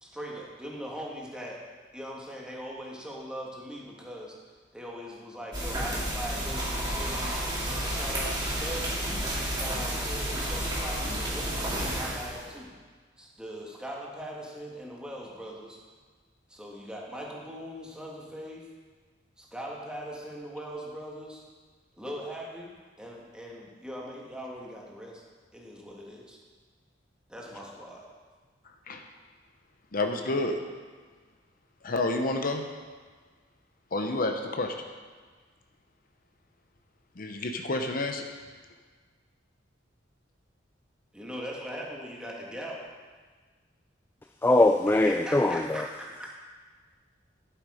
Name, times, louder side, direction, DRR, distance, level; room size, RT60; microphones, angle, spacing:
voice 1, 0.0-1.6 1.9-4.4 4.7-7.4 7.8-9.1 9.4-12.7 13.2-15.8 16.5-18.6 19.4-21.4 22.0-22.7 23.0-25.2 25.5-26.4 27.3-28.1 41.1-42.8 44.9-46.3, equal, 5° right, -3 dB, 1.8 m, -40 dB
sound 1, 5.5-12.5, right 1 dB, 25° right, 2.5 m, -31 dB
voice 2, 29.9-30.5 31.8-32.6 33.9-34.7 37.2-38.2, left 2 dB, 50° left, 4 dB, 0.8 m, -29 dB
voice 3, 44.4-45.8, left 2 dB, 10° left, 5 dB, 0.3 m, -22 dB
11.5 x 8.1 x 5.0 m, 1.5 s
head